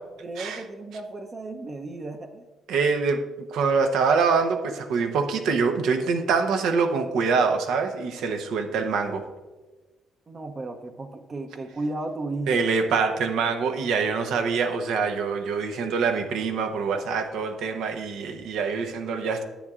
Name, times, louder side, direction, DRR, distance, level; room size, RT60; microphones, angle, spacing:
voice 1, 0.2-2.5 10.3-12.7, right 2 dB, 35° right, 6 dB, 0.6 m, -34 dB
voice 2, 2.7-3.2 3.5-9.3 12.5-19.4, right 5 dB, 85° right, 6 dB, 0.8 m, -25 dB
10.0 x 8.1 x 2.4 m, 1.2 s
cardioid pair, 90°, 0 cm